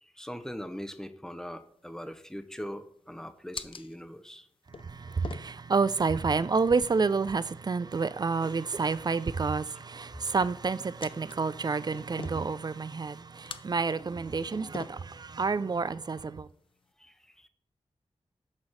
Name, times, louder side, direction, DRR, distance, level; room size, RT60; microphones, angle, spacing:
voice 1, 0.0-4.5 17.0-17.5, equal, 5° left, 0.7 m, -41 dB
sound 1, 1.6-16.9, left 5 dB, 50° left, 0.5 m, -49 dB
voice 2, 4.8-16.5, right 4 dB, 35° right, 0.4 m, -29 dB
7.2 x 4.1 x 6.2 m
wide cardioid pair, 75°, 11 cm